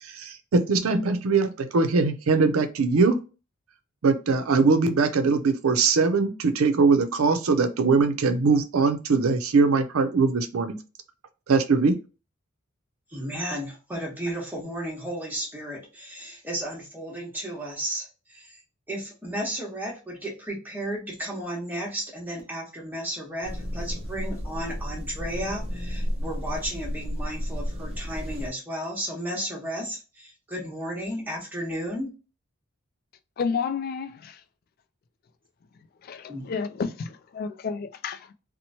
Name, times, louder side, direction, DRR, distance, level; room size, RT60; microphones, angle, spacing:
voice 1, 0.0-3.2 4.0-10.8 11.5-12.0, right 4 dB, 90° right, 0.5 m, -21 dB
voice 2, 13.1-18.6 18.9-32.1 36.3-36.5, right 1 dB, 10° right, 1.0 m, -33 dB
sound 1, 23.4-28.5, equal, 30° right, 0.6 m, -32 dB
voice 3, 33.4-34.4 36.0-38.3, left 5 dB, 45° left, 0.3 m, -31 dB
2.9 x 2.1 x 2.7 m
head